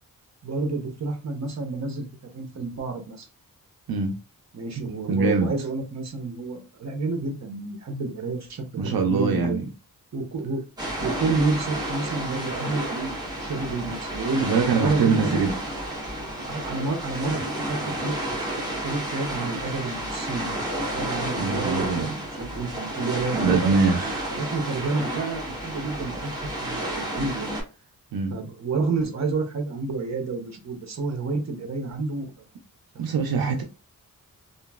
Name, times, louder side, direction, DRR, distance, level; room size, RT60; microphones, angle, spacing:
voice 1, 0.4-3.3 4.5-9.6 10.1-10.6 11.0-15.4 16.4-18.1 18.6-20.6 20.9-23.8 24.3-27.5 28.3-32.3 32.9-33.3, right 3 dB, 50° right, 0.8 m, -30 dB
voice 2, 4.8-5.5 8.8-9.7 14.4-15.5 21.4-22.1 23.4-24.3 28.1-28.4 33.0-33.6, right 4 dB, 80° right, 0.5 m, -23 dB
sound 1, 10.8-27.6, right 1 dB, 10° right, 1.1 m, -31 dB
2.9 x 2.5 x 2.3 m
wide cardioid pair, 140°, 36 cm